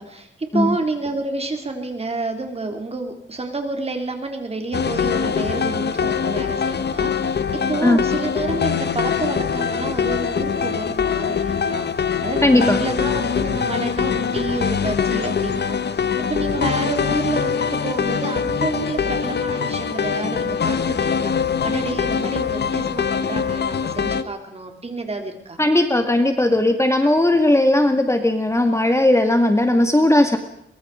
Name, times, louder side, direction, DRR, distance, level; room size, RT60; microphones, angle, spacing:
voice 1, 0.0-25.6, right 3 dB, 30° right, 4 dB, 3.8 m, -29 dB
sound 1, 4.7-24.2, left 6 dB, 60° left, 1.1 m, -23 dB
voice 2, 12.4-12.8 25.6-30.4, left 1 dB, 15° left, 6 dB, 2.0 m, -17 dB
23.0 x 23.0 x 5.1 m, 0.73 s
wide cardioid pair, 120°, 20 cm